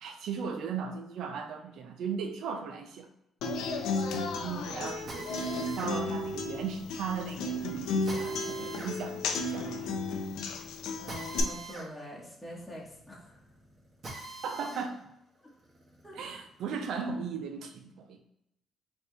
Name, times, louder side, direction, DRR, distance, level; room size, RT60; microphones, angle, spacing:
voice 1, 0.0-3.1 4.4-5.3 5.7-9.9 14.4-15.0 16.1-18.2, right 6 dB, 75° right, 7 dB, 0.6 m, -37 dB
Human voice / Acoustic guitar, 3.4-11.4, left 3 dB, 90° left, 0.6 m, -34 dB
Drill, 5.1-14.9 15.3-17.0, right 2 dB, 45° right, 1.6 m, -46 dB
voice 2, 11.0-13.4 16.0-16.1, equal, 5° left, -6 dB, 1.4 m, -44 dB
4.2 x 3.1 x 3.3 m, 0.84 s
cardioid pair, 90°, 0 cm